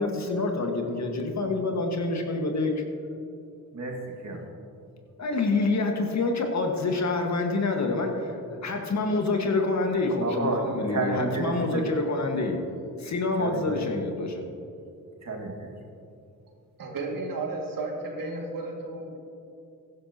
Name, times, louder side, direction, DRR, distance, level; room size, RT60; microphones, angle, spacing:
voice 1, 0.0-2.7 5.2-12.6 13.0-14.4, left 3 dB, 50° left, 3 dB, 1.7 m, -27 dB
voice 2, 3.7-4.4 10.2-10.6 10.9-12.0 13.3-13.8 15.2-15.7, right 3 dB, 50° right, 0 dB, 2.1 m, -31 dB
voice 3, 16.8-19.2, right 2 dB, 65° right, 0 dB, 2.3 m, -33 dB
15.5 x 11.0 x 2.9 m, 2.6 s
cardioid pair, 60°, 36 cm